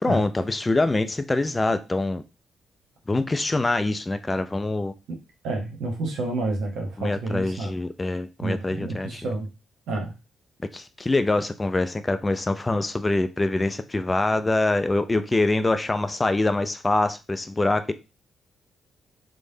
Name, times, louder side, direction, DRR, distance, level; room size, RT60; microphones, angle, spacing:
voice 1, 0.0-2.2 3.1-4.9 7.0-9.3 10.7-17.9, left 2 dB, 25° left, 0.3 m, -24 dB
voice 2, 5.4-7.7 8.4-9.5 9.9-10.1, right 2 dB, 65° right, 0.8 m, -29 dB
3.2 x 2.1 x 2.6 m
figure-of-eight pair, 40°, 0 cm